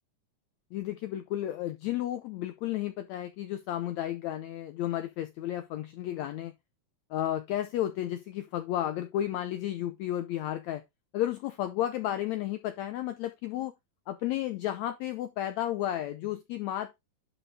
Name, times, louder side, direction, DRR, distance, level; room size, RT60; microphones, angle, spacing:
voice 1, 0.7-6.5 7.1-10.8 11.1-13.7 14.1-17.0, left 12 dB, 90° left, 1.5 m, -32 dB
11.0 x 4.3 x 3.5 m
omnidirectional pair, 4.0 m